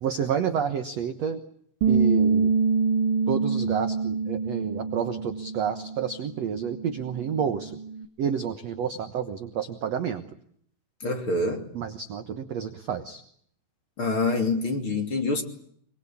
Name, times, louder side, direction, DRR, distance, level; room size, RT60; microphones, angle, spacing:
voice 1, 0.0-1.4 1.9-2.5 3.3-7.7 8.2-10.2 11.7-13.2, right 7 dB, 65° right, 8 dB, 1.7 m, -29 dB
Bass guitar, 1.8-6.1 6.4-8.0, right 5 dB, 45° right, 1.9 m, -26 dB
voice 2, 11.0-11.7 14.0-15.4, left 2 dB, 35° left, 5 dB, 3.3 m, -26 dB
24.5 x 23.5 x 8.7 m, 0.66 s
omnidirectional pair, 4.8 m